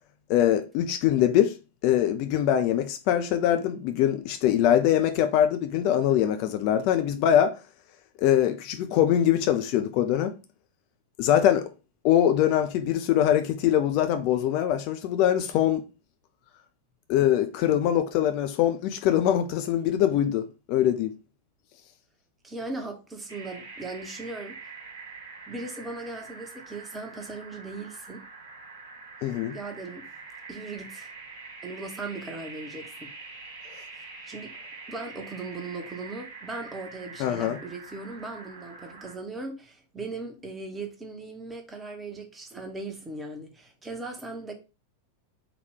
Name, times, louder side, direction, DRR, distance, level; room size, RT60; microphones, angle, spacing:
voice 1, 0.3-1.6 1.8-7.6 8.2-10.3 11.2-11.7 12.0-15.8 17.1-21.1 29.2-29.5 37.2-37.6, left 11 dB, 45° left, 0.3 m, -23 dB
voice 2, 22.4-24.6 25.5-28.2 29.5-30.0 30.5-31.1 31.6-33.1 34.3-34.5 34.9-44.5, right 3 dB, 15° right, 0.8 m, -38 dB
sound 1, 23.3-39.2, right 4 dB, 65° right, 1.2 m, -45 dB
3.8 x 2.3 x 3.5 m
figure-of-eight pair, 90°, 0 cm